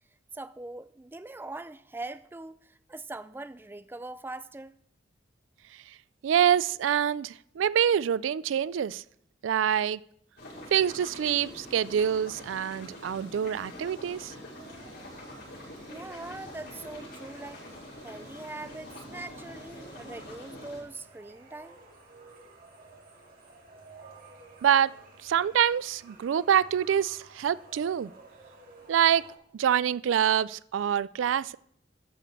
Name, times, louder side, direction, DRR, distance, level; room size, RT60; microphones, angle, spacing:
voice 1, 0.3-4.7 15.9-17.6 18.0-21.8, right 2 dB, 10° right, 0.4 m, -42 dB
voice 2, 6.2-9.0 9.4-10.0 10.7-14.3 24.6-24.9 25.2-28.1 28.9-29.2 29.5-31.6, right 9 dB, 90° right, 0.3 m, -26 dB
sound 1, 10.4-20.8, left 1 dB, 60° left, 6.3 m, -45 dB
sound 2, 14.6-29.3, right 3 dB, 50° right, 2.9 m, -53 dB
13.5 x 5.9 x 7.4 m
head